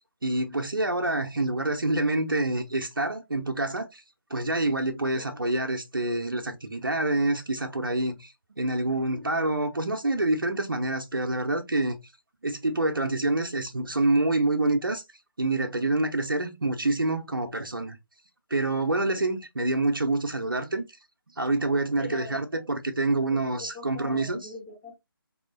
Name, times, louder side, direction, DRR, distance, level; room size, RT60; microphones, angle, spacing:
voice 1, 0.2-4.0 4.3-12.0 12.4-15.0 15.4-18.0 18.5-20.8 21.4-24.4, right 2 dB, 65° right, 0.7 m, -27 dB
voice 2, 22.0-22.6 23.3-25.0, left 2 dB, 10° left, 0.5 m, -42 dB
3.6 x 2.8 x 2.4 m
figure-of-eight pair, 155°, 12 cm